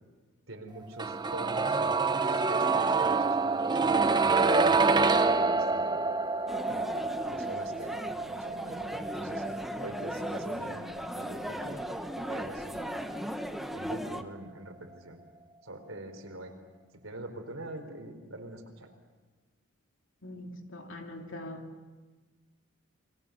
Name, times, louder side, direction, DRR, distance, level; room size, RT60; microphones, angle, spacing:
voice 1, 0.5-6.0 6.7-9.4 9.8-11.9 12.3-13.0 13.7-15.2 15.6-16.5 17.0-18.9, right 1 dB, 70° right, 4 dB, 4.3 m, -44 dB
sound 1, 1.0-12.8 13.1-13.2, right 4 dB, 20° right, 0.8 m, -27 dB
sound 2, 6.5-14.2, equal, ahead, 1.1 m, -37 dB
voice 2, 20.2-21.7, left 1 dB, 65° left, 3 dB, 2.9 m, -42 dB
29.0 x 22.5 x 6.9 m, 1.3 s
head